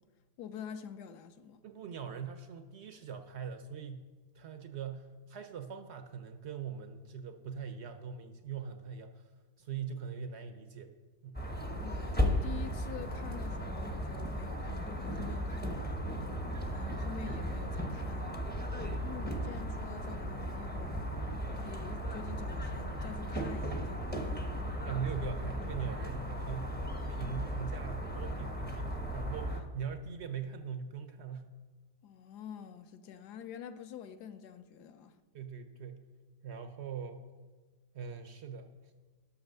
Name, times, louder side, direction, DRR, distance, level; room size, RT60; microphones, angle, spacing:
voice 1, 0.4-1.6 11.8-16.0 16.7-18.5 19.0-21.0 21.5-24.5 32.0-35.2, left 8 dB, 70° left, 1.2 m, -47 dB
voice 2, 1.6-4.1 4.3-9.3 9.6-10.9 11.2-11.5 24.8-26.8 27.1-31.5 35.3-36.0 36.4-37.3 37.9-38.7, right 6 dB, 70° right, 0.6 m, -41 dB
sound 1, 11.3-29.6, equal, 15° left, 0.4 m, -36 dB
11.5 x 6.0 x 6.6 m
omnidirectional pair, 1.9 m